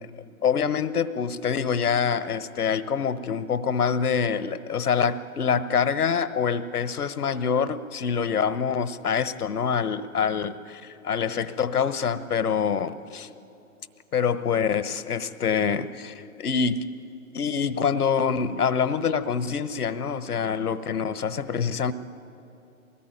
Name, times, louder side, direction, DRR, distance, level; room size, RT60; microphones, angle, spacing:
voice 1, 0.4-13.3 14.1-16.9 17.3-21.9, left 6 dB, 80° left, 1.1 m, -25 dB
22.5 x 19.0 x 9.2 m
hypercardioid pair, 135°, 44 cm